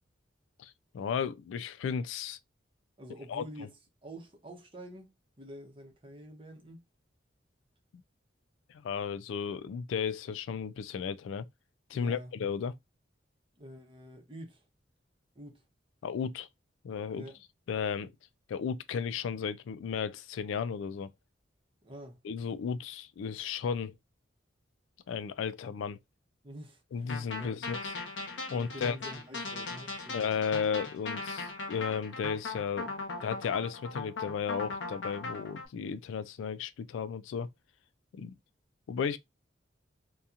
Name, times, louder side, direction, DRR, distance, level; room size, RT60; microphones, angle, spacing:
voice 1, 0.6-2.4 3.3-3.7 8.7-11.4 11.9-12.7 16.0-16.5 16.8-17.2 17.7-18.1 18.5-21.1 22.2-23.9 25.1-26.0 26.9-27.9 28.5-29.0 30.1-32.9 33.2-37.5 38.1-38.4 38.9-39.2, left 6 dB, 90° left, 0.3 m, -34 dB
voice 2, 3.0-3.8 4.0-6.8 11.9-12.3 13.6-14.6 15.3-15.6 17.1-17.4 21.8-22.2 26.4-26.8 27.4-27.5 28.5-30.2, equal, 30° right, 0.8 m, -47 dB
sound 1, 27.1-35.6, left 3 dB, 75° left, 0.8 m, -39 dB
2.8 x 2.2 x 2.4 m
head